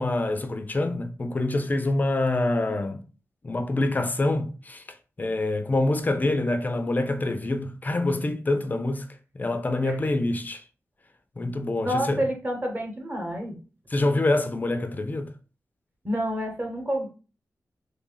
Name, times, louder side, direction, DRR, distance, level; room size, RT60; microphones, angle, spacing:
voice 1, 0.0-3.0 3.4-4.8 5.2-9.1 9.3-10.6 11.4-12.2 13.9-15.3, left 2 dB, 30° left, 0.5 m, -26 dB
voice 2, 11.8-13.6 16.0-17.1, equal, 30° right, 1.1 m, -28 dB
3.2 x 2.4 x 3.9 m
wide cardioid pair, 120°, 6 cm